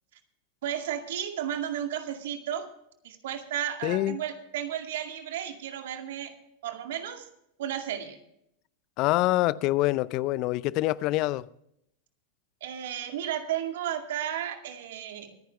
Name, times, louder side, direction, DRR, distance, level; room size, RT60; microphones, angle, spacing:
voice 1, 0.6-2.7 3.0-6.3 6.6-7.3 7.6-8.2 12.6-15.3, right 10 dB, 65° right, 2.2 m, -33 dB
voice 2, 3.8-4.2 9.0-11.5, left 17 dB, 45° left, 0.5 m, -25 dB
24.0 x 10.0 x 3.3 m
hypercardioid pair, 90°, 0 cm